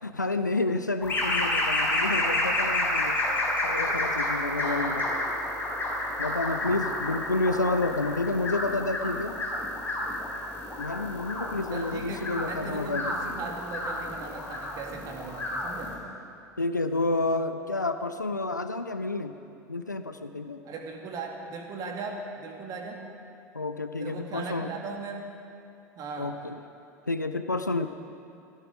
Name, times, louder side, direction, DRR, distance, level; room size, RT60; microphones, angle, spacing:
voice 1, 0.0-3.2 3.6-5.0 6.2-9.5 10.8-13.2 16.6-19.4 19.7-20.6 23.5-24.7 26.2-26.6 27.1-27.9, left 2 dB, 85° left, 9 dB, 0.5 m, -30 dB
sound 1, 1.0-15.9, left 1 dB, 20° left, 4.9 m, -30 dB
voice 2, 4.5-5.0 6.6-6.9 11.7-16.0 20.6-23.0 24.0-25.3 26.0-26.3, right 4 dB, 40° right, 2 dB, 2.3 m, -38 dB
17.0 x 15.0 x 5.1 m, 2.5 s
figure-of-eight pair, 75°, 9 cm